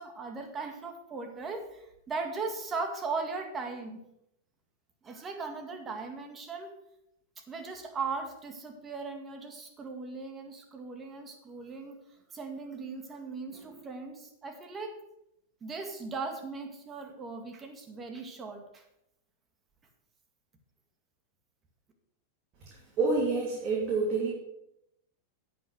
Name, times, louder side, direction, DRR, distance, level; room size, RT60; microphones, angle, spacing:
voice 1, 0.0-4.0 5.0-6.7 7.5-12.0 12.3-14.9 15.6-18.8, right 4 dB, 25° right, 4 dB, 2.0 m, -38 dB
voice 2, 23.0-24.3, right 3 dB, 40° right, -4 dB, 2.8 m, -27 dB
9.3 x 5.9 x 6.3 m, 0.83 s
hypercardioid pair, 110°, 0 cm